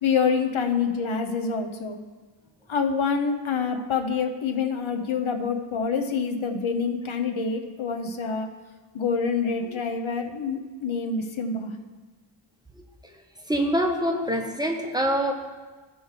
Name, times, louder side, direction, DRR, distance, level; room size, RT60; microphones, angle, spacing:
voice 1, 0.0-2.0 2.7-8.5 8.9-11.7, left 5 dB, 70° left, 5 dB, 0.8 m, -26 dB
voice 2, 13.5-15.3, equal, 10° right, 2 dB, 1.1 m, -24 dB
15.0 x 5.3 x 3.2 m, 1.3 s
wide cardioid pair, 50°, 50 cm